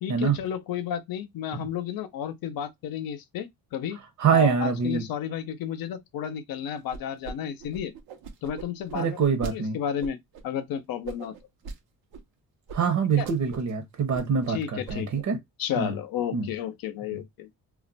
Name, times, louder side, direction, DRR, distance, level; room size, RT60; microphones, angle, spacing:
voice 1, 0.0-4.0 4.3-7.9 8.4-9.2 9.5-10.2 10.4-11.4 13.2-13.3 14.5-15.1 15.6-17.5, left 9 dB, 75° left, 0.7 m, -32 dB
voice 2, 4.2-5.0 8.9-9.8 12.7-15.4 15.8-15.9 16.3-16.5 17.1-17.2, right 6 dB, 55° right, 0.8 m, -25 dB
sound 1, 6.9-7.3 7.6-9.5 10.0-10.4 11.0-11.8 12.1-12.2 12.7-12.8 13.1-13.7 14.0-14.5 14.9-15.2, right 5 dB, 85° right, 0.8 m, -40 dB
2.4 x 2.2 x 3.9 m
cardioid pair, 125°, 36 cm